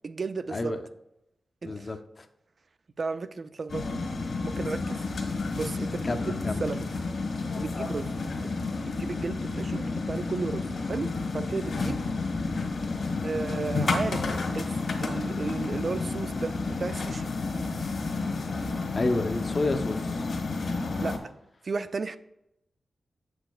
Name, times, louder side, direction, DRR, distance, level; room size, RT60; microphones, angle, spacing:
voice 1, 0.0-0.7 1.6-1.9 3.0-4.0 4.4-5.0 5.5-6.9 7.6-8.1 8.4-8.5 8.8-12.0 13.2-14.3 14.5-17.3 21.0-21.2 21.6-22.2, right 4 dB, 50° right, 0.3 m, -34 dB
voice 2, 1.6-2.3 6.0-6.6 18.9-20.3, left 2 dB, 40° left, 0.5 m, -30 dB
sound 1, 3.7-21.2, left 3 dB, 70° left, 1.2 m, -31 dB
8.0 x 6.5 x 2.2 m
wide cardioid pair, 90°, 0 cm